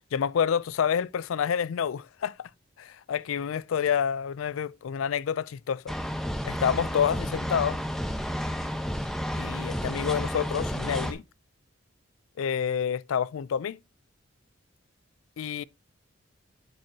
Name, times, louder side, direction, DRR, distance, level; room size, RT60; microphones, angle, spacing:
voice 1, 0.1-2.5 2.8-5.9 6.4-7.8 9.3-11.2 12.4-13.8 15.4-15.6, left 8 dB, 80° left, 0.4 m, -28 dB
sound 1, 5.9-11.1, equal, ahead, 1.0 m, -31 dB
8.9 x 7.7 x 2.7 m
head